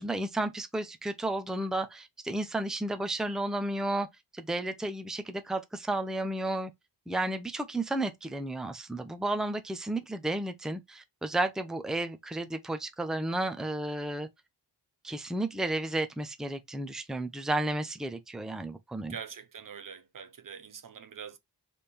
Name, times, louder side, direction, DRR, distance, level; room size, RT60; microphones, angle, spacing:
voice 1, 0.0-4.1 4.3-6.7 7.1-14.3 15.0-19.2, right 1 dB, ahead, 0.6 m, -32 dB
voice 2, 19.1-21.4, right 7 dB, 50° right, 0.7 m, -44 dB
3.5 x 3.4 x 4.2 m
cardioid pair, 75°, 44 cm